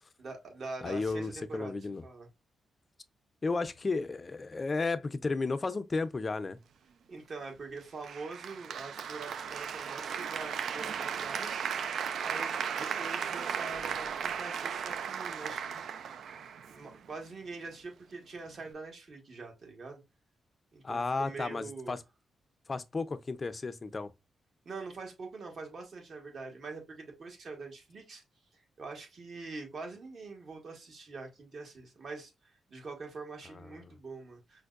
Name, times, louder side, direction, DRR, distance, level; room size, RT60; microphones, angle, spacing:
voice 1, 0.2-2.3 7.1-15.8 16.7-20.0 20.7-22.0 24.6-28.2 28.8-34.6, right 3 dB, 55° right, 1.3 m, -44 dB
voice 2, 0.8-2.0 3.4-6.6 20.8-22.0 22.7-24.1 33.5-33.7, left 3 dB, 35° left, 0.5 m, -33 dB
Applause, 8.0-17.1, right 7 dB, 75° right, 0.3 m, -36 dB
5.2 x 2.1 x 2.4 m
supercardioid pair, 60°, 0 cm